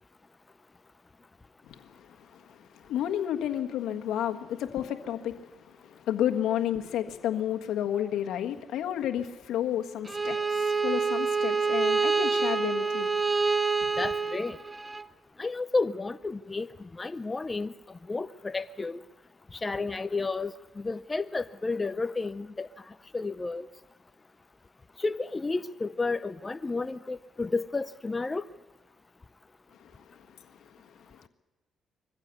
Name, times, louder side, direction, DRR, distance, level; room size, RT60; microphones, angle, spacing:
voice 1, 1.6-13.2 13.8-13.9 29.8-31.3, left 10 dB, 85° left, 5 dB, 1.5 m, -32 dB
Bowed string instrument, 10.1-15.0, right 4 dB, 20° right, 0.7 m, -27 dB
voice 2, 14.0-14.6 15.4-16.7 17.0-17.7 18.1-19.0 19.5-22.7 23.1-23.7 25.0-28.5, left 3 dB, 25° left, 12 dB, 0.6 m, -31 dB
23.0 x 15.0 x 8.4 m, 1.1 s
cardioid pair, 90°, 0 cm